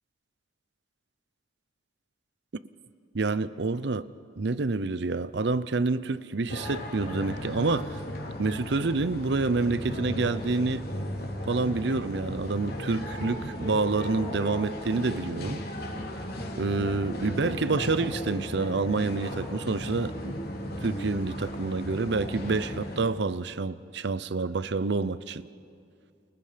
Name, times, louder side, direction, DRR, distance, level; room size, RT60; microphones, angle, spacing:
voice 1, 3.1-4.0 4.4-8.0 8.4-10.8 11.5-15.6 16.6-20.4 20.8-25.4, right 3 dB, 65° right, 0.7 m, -28 dB
sound 1, 6.5-23.0, equal, 55° left, 3.3 m, -36 dB
29.0 x 29.0 x 5.1 m
head